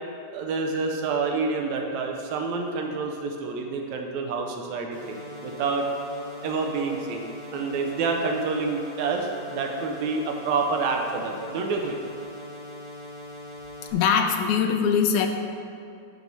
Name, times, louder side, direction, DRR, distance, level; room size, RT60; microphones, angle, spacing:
voice 1, 0.3-5.9 6.4-12.0, right 4 dB, 75° right, 2 dB, 1.9 m, -28 dB
sound 1, 4.9-13.9, left 1 dB, 40° right, 0.8 m, -41 dB
voice 2, 13.9-15.3, left 6 dB, 85° left, 5 dB, 2.1 m, -22 dB
10.5 x 4.6 x 5.4 m, 2.5 s
omnidirectional pair, 3.5 m